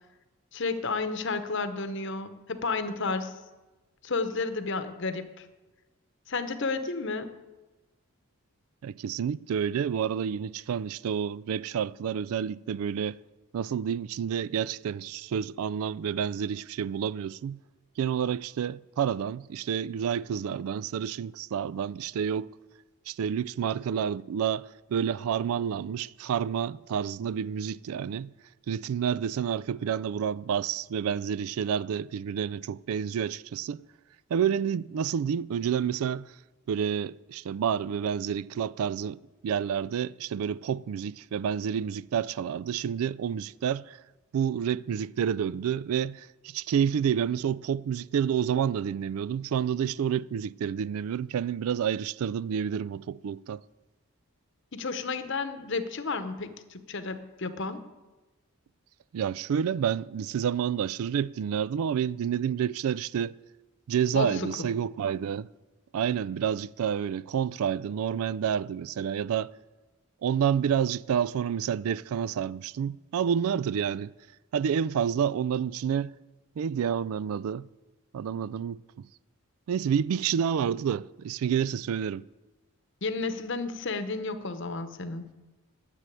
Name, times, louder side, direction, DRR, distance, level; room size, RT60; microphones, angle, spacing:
voice 1, 0.5-3.4 4.0-5.5 6.3-7.3 54.7-57.8 64.1-64.7 83.0-85.3, left 3 dB, 55° left, 0.9 m, -32 dB
voice 2, 8.8-13.2 13.5-17.6 18.0-22.5 23.1-28.3 28.7-33.8 34.3-36.3 36.7-44.0 44.3-53.6 59.1-63.3 63.9-65.5 65.9-69.5 70.2-74.1 74.5-76.1 76.6-77.7 78.1-78.8 79.7-82.2, right 8 dB, 75° right, 0.3 m, -29 dB
9.8 x 7.5 x 9.1 m
head